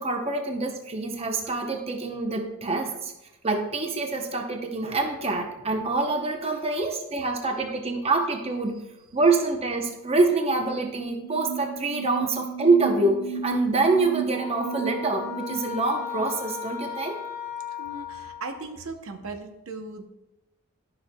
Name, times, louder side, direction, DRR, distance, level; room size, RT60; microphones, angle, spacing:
voice 1, 0.0-3.1 3.4-8.8 9.1-17.2, right 3 dB, 25° right, 3 dB, 0.8 m, -26 dB
sound 1, 10.5-16.2, right 7 dB, 85° right, 1.1 m, -34 dB
sound 2, 14.3-18.8, left 8 dB, 10° left, 1.4 m, -36 dB
voice 2, 17.8-20.1, right 3 dB, 70° right, 5 dB, 0.8 m, -38 dB
12.5 x 5.9 x 2.2 m, 0.95 s
head